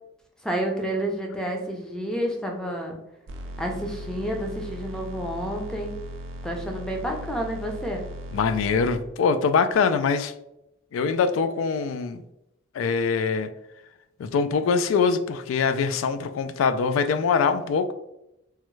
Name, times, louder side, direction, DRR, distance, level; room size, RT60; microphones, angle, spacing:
voice 1, 0.4-3.0 3.6-5.9 6.4-8.0, right 1 dB, 5° left, 0.4 m, -29 dB
sound 1, 3.3-9.0, equal, 65° right, 0.4 m, -38 dB
voice 2, 8.3-10.3 10.9-12.2 12.7-13.5 14.2-17.9, left 5 dB, 80° left, 0.3 m, -23 dB
3.5 x 2.1 x 3.0 m
head